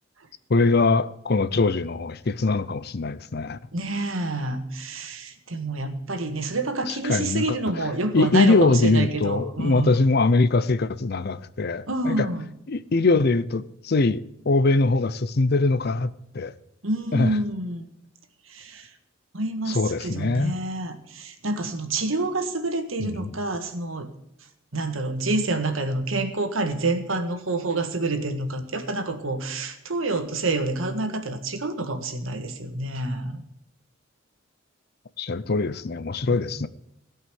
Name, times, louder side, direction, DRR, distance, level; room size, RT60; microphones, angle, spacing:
voice 1, 0.5-3.6 6.9-7.6 8.1-12.3 12.7-16.5 17.1-17.3 19.7-20.6 23.0-23.3 35.2-36.7, left 3 dB, 50° left, 0.6 m, -22 dB
voice 2, 3.7-10.0 11.9-12.5 16.8-17.8 18.5-18.9 19.3-24.1 24.7-33.4 36.3-36.5, right 2 dB, 85° right, 1.7 m, -28 dB
16.5 x 5.6 x 9.3 m
head